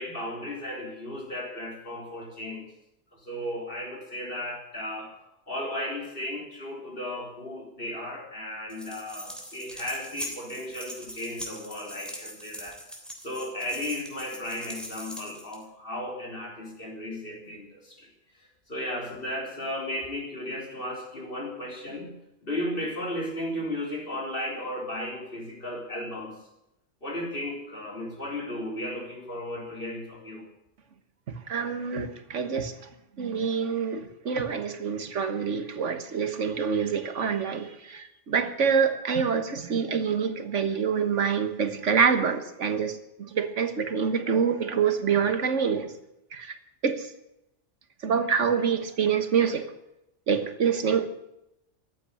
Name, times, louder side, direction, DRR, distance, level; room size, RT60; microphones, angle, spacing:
voice 1, 0.0-2.7 3.1-5.1 5.5-12.8 13.2-18.1 18.4-26.3 27.0-30.5, left 1 dB, 50° left, -1 dB, 4.1 m, -35 dB
sound 1, 8.7-15.6, equal, ahead, 3.2 m, -41 dB
voice 2, 31.5-32.7 33.2-45.9 46.3-46.5 46.8-47.1 48.0-49.7 50.3-51.1, right 6 dB, 90° right, 10 dB, 1.7 m, -26 dB
14.5 x 9.2 x 10.0 m, 0.85 s
omnidirectional pair, 1.2 m